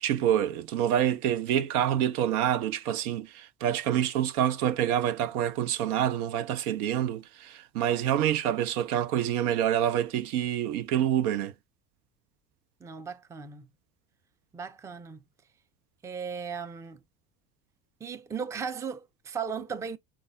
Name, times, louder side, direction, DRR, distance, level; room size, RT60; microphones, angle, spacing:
voice 1, 0.0-11.5, right 10 dB, 65° right, 0.7 m, -27 dB
voice 2, 12.8-13.7 14.5-15.2 16.0-17.0 18.0-20.0, right 6 dB, 5° right, 0.5 m, -36 dB
5.1 x 2.5 x 3.6 m
figure-of-eight pair, 65°, 49 cm